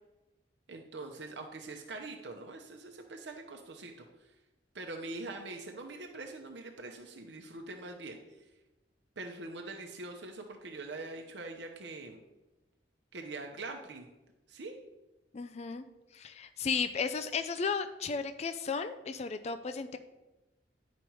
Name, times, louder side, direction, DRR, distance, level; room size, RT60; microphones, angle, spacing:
voice 1, 0.7-3.9 4.2-4.3 4.7-8.2 9.2-12.2 13.1-14.1 14.5-14.7, right 2 dB, 90° right, 3 dB, 0.8 m, -43 dB
voice 2, 15.3-15.8 16.1-20.0, left 5 dB, 40° left, 9 dB, 0.4 m, -34 dB
10.5 x 5.2 x 4.6 m, 1.1 s
head